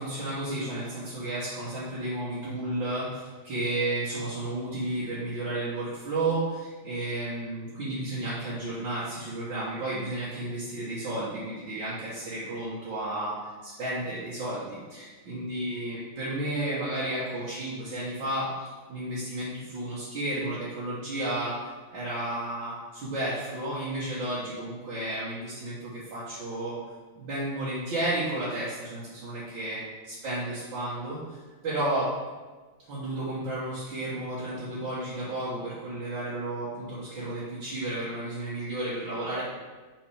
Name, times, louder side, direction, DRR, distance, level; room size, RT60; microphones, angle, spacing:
voice 1, 0.0-26.8 27.2-29.8 30.2-31.4 31.6-32.1 32.9-39.4, right 1 dB, 70° right, -9 dB, 2.1 m, -32 dB
6.1 x 3.9 x 4.9 m, 1.3 s
omnidirectional pair, 2.2 m